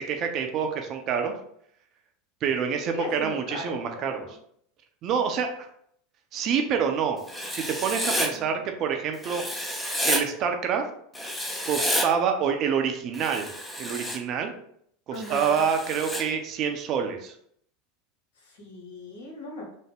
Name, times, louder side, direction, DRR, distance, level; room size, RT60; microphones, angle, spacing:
voice 1, 0.0-1.3 2.4-4.3 5.0-5.5 6.3-7.2 7.5-9.4 10.0-10.8 11.7-13.5 13.8-14.5 15.3-17.3, right 7 dB, 45° right, 4 dB, 0.5 m, -27 dB
voice 2, 2.9-4.3 8.0-8.6 15.1-15.6 18.4-19.8, left 1 dB, 75° left, -1 dB, 1.0 m, -39 dB
Writing, 7.3-8.3 9.2-10.2 11.1-12.1 13.1-14.2 15.2-16.2, equal, 10° left, 0.5 m, -30 dB
3.4 x 2.1 x 3.4 m, 0.67 s
hypercardioid pair, 85°, 0 cm